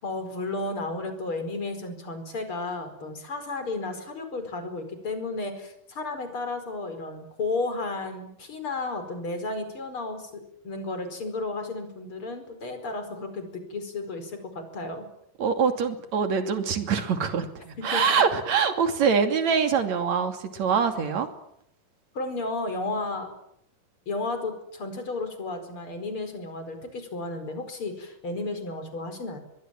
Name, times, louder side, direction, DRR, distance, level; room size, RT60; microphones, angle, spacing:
voice 1, 0.0-15.0 17.8-18.2 22.1-23.3 24.1-29.4, left 3 dB, 35° left, 8 dB, 5.5 m, -33 dB
voice 2, 15.4-21.3, right 6 dB, 55° right, 8 dB, 3.7 m, -24 dB
24.0 x 22.0 x 9.1 m, 0.74 s
omnidirectional pair, 4.0 m